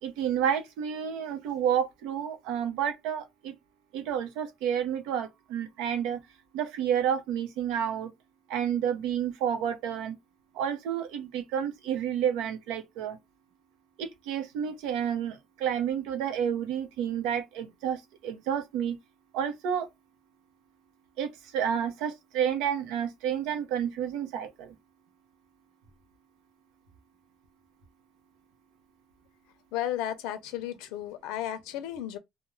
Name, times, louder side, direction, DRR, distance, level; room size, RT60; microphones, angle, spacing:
voice 1, 0.0-3.5 3.9-6.2 6.5-8.1 8.5-10.2 10.5-13.2 14.0-19.0 19.3-19.9 21.2-24.7, right 9 dB, 75° right, 0.7 m, -30 dB
voice 2, 29.7-32.2, left 12 dB, 85° left, 0.5 m, -34 dB
2.3 x 2.1 x 3.1 m
cardioid pair, 180°, 0 cm